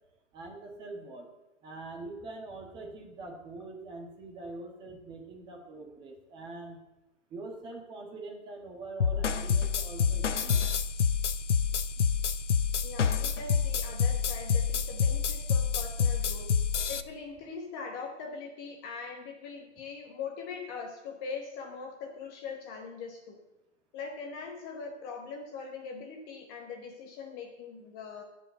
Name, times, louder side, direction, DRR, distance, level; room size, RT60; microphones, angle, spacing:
voice 1, 0.3-1.3 1.6-6.8 7.3-10.6, right 2 dB, 15° right, 2 dB, 1.5 m, -43 dB
sound 1, 9.0-17.0, left 6 dB, 85° left, 0.9 m, -28 dB
voice 2, 12.8-16.5 16.9-23.4 23.9-28.2, left 5 dB, 20° left, 2 dB, 1.1 m, -41 dB
15.0 x 5.6 x 7.8 m, 0.99 s
hypercardioid pair, 155°, 35 cm